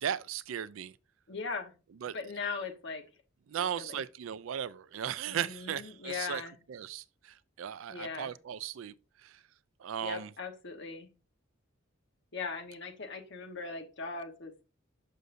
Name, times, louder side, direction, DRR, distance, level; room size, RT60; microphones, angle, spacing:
voice 1, 0.0-0.9 2.0-2.2 3.5-6.4 6.7-9.4 9.8-10.3, right 9 dB, 70° right, 0.4 m, -37 dB
voice 2, 1.3-1.7 2.1-3.0 3.8-4.0 5.3-6.6 7.9-8.3 10.0-11.1 12.3-14.6, left 4 dB, 60° left, 1.2 m, -39 dB
6.7 x 6.4 x 2.6 m
head